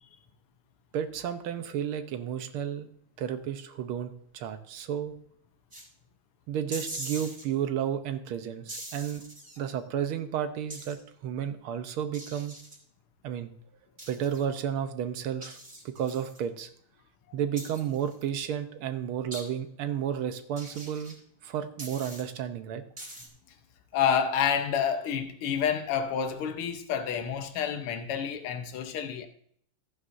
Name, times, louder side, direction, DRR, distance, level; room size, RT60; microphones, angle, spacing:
voice 1, 0.9-2.9 3.2-5.1 6.5-9.2 9.6-12.6 13.2-13.5 14.1-15.6 15.9-16.7 17.3-21.2 21.4-22.8, right 9 dB, 75° right, 1.7 m, -32 dB
sound 1, 5.7-5.9 6.7-7.4 8.7-9.6 10.7-11.0 12.1-12.8 14.0-14.4 15.4-16.4 17.6-18.2 19.3-19.4 20.6-21.2 21.8-22.2 23.0-23.3, right 1 dB, 25° right, 2.8 m, -42 dB
voice 2, 23.9-29.3, left 7 dB, 85° left, 1.8 m, -29 dB
14.5 x 9.6 x 2.6 m
omnidirectional pair, 2.4 m